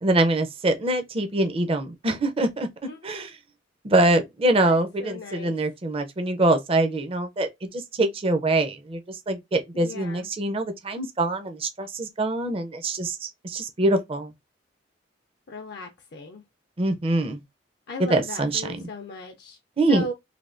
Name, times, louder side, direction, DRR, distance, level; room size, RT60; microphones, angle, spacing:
voice 1, 0.0-2.7 3.0-3.3 3.8-14.3 16.8-17.4 18.1-18.8 19.8-20.0, right 2 dB, 30° right, 0.5 m, -24 dB
voice 2, 4.7-5.6 9.7-10.3 15.5-16.4 17.9-19.6 19.9-20.1, left 2 dB, 60° left, 0.5 m, -37 dB
3.3 x 2.2 x 2.5 m
head